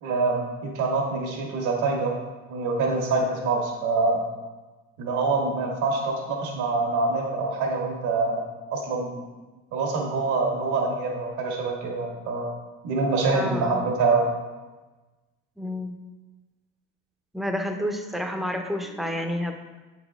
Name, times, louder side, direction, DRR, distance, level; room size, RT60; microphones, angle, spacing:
voice 1, 0.0-2.2 2.5-4.2 5.0-8.4 8.7-9.2 9.7-12.5 12.8-14.3, right 3 dB, 70° right, 0 dB, 1.5 m, -25 dB
voice 2, 13.3-13.9 15.6-16.0 17.3-19.5, left 1 dB, ahead, 4 dB, 0.6 m, -29 dB
7.7 x 4.1 x 3.5 m, 1.2 s
supercardioid pair, 105°, 30 cm